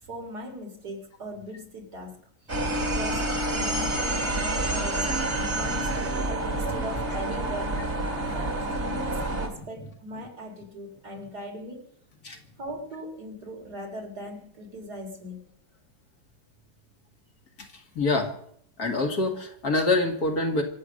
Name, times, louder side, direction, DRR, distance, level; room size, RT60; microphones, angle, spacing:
voice 1, 0.0-2.2 2.5-5.1 5.6-7.9 8.2-11.9 12.6-15.4, equal, 55° right, 2 dB, 3.9 m, -39 dB
sound 1, 2.5-9.5, right 1 dB, 35° right, 2.6 m, -28 dB
voice 2, 5.4-5.9 12.2-12.4 17.6-18.3 18.8-20.6, left 2 dB, 55° left, 3 dB, 2.4 m, -26 dB
25.5 x 8.5 x 6.4 m, 0.67 s
omnidirectional pair, 2.0 m